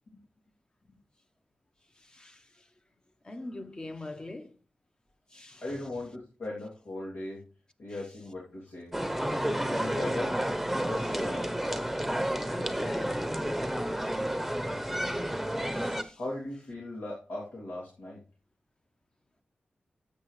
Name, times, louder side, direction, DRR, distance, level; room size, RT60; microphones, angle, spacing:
voice 1, 1.9-2.7 3.2-4.6 5.3-5.9 7.9-8.1 9.2-9.3 12.4-13.8 14.1-14.6 15.6-16.2, left 2 dB, 25° left, 1.1 m, -44 dB
voice 2, 5.6-7.5 7.8-10.3 10.7-11.5 16.1-18.2, left 2 dB, 80° left, 3.0 m, -39 dB
sound 1, 8.9-16.0, right 1 dB, ahead, 1.0 m, -31 dB
12.5 x 8.7 x 3.3 m
wide cardioid pair, 85°, 3 cm